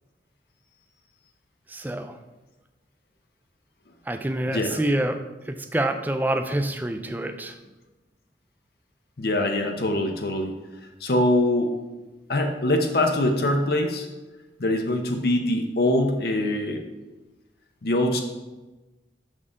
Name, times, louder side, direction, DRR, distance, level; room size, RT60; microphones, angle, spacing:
voice 1, 1.7-2.2 4.1-5.2 5.5-7.6, right 1 dB, 10° right, 7 dB, 0.4 m, -27 dB
voice 2, 4.5-4.8 9.2-10.6 11.0-11.8 12.3-14.1 14.6-16.8 17.8-18.2, left 1 dB, 60° left, 4 dB, 0.6 m, -23 dB
6.5 x 6.4 x 3.6 m, 1.1 s
head